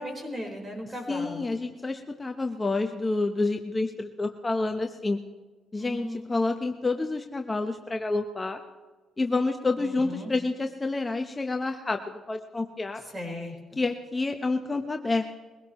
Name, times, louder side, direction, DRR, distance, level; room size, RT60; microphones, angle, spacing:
voice 1, 0.0-1.5 5.8-6.3 9.8-10.3 13.1-13.6, left 1 dB, 25° right, 1 dB, 4.6 m, -36 dB
voice 2, 1.1-5.2 5.7-8.6 9.2-12.0 12.3-13.0 13.8-15.4, left 3 dB, 20° left, 4 dB, 1.0 m, -28 dB
22.0 x 17.0 x 3.1 m, 1.3 s
cardioid pair, 90°, 0 cm